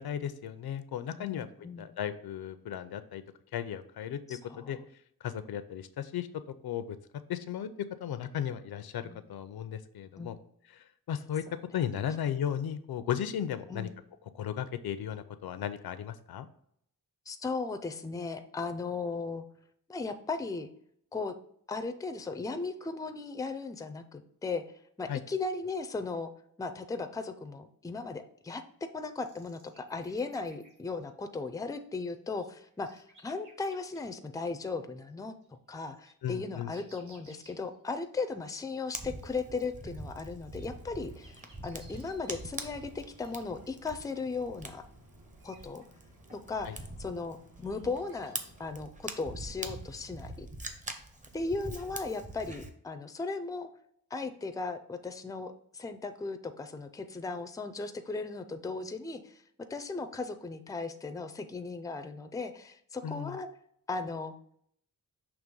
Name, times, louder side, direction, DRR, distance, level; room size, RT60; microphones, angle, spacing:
voice 1, 0.0-1.5 1.8-3.2 3.5-4.8 5.2-6.3 6.6-7.0 7.3-7.7 8.0-10.4 10.7-11.4 11.7-13.9 14.3-16.5 25.1-25.2 36.2-36.7 46.6-46.7 63.0-63.4, left 9 dB, 85° left, 12 dB, 0.6 m, -35 dB
voice 2, 1.2-1.9 4.3-4.8 9.0-9.2 10.2-10.4 13.7-13.9 17.3-19.4 19.9-20.7 21.1-21.3 21.7-24.6 25.0-26.3 26.6-28.6 28.9-35.3 35.7-44.8 45.4-45.8 46.5-50.5 51.3-53.7 54.1-59.4 59.7-63.5 63.9-64.3, left 3 dB, 10° left, 8 dB, 0.4 m, -37 dB
sound 1, 29.2-31.1 31.4-31.8 32.1-34.0 34.5-34.6 35.1-35.2 35.4-37.8 38.0-38.1 38.4-38.5 38.7-38.8 39.0-39.4 39.7-42.1, right 2 dB, 55° right, 1.6 m, -61 dB
Fire, 38.9-52.7, right 2 dB, 20° right, 0.7 m, -44 dB
sound 2, 40.6-48.7, right 1 dB, 70° right, 1.6 m, -61 dB
6.2 x 3.0 x 5.2 m, 0.67 s
wide cardioid pair, 125°, 36 cm